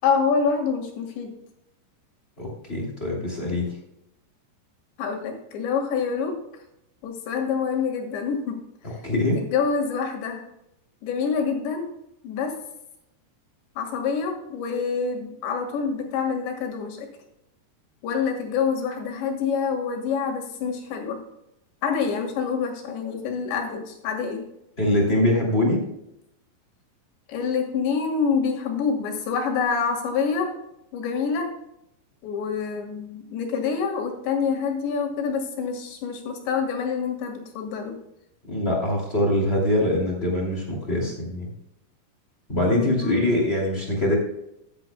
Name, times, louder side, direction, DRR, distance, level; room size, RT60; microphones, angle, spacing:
voice 1, 0.0-1.4 5.0-6.4 7.0-8.6 8.9-9.0 9.4-10.5 11.0-11.9 12.2-12.6 13.8-17.1 18.0-21.2 21.8-24.5 27.3-30.5 30.9-31.5 32.2-38.0 42.7-43.3, left 5 dB, 80° left, 3 dB, 3.9 m, -26 dB
voice 2, 2.4-3.7 9.0-9.4 24.8-25.8 38.4-41.5 42.5-44.1, left 1 dB, 20° left, -1 dB, 2.0 m, -23 dB
14.0 x 10.5 x 2.3 m, 0.82 s
omnidirectional pair, 5.1 m